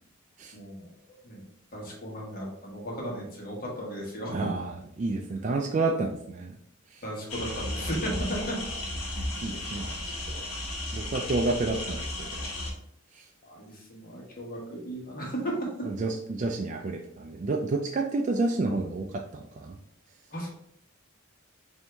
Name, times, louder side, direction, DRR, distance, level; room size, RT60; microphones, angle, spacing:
voice 1, 0.5-0.9 1.2-1.4 1.7-4.4 7.0-8.6 9.2-9.3 13.5-15.7 20.3-20.5, equal, 40° left, -1 dB, 1.2 m, -35 dB
voice 2, 4.3-6.5 6.9-7.0 8.1-8.3 9.1-10.4 10.9-12.4 13.1-13.2 15.8-19.7, right 3 dB, 35° right, 2 dB, 0.3 m, -30 dB
sound 1, 7.3-12.7, left 1 dB, 90° left, 1.1 m, -34 dB
4.5 x 2.7 x 3.3 m, 0.71 s
head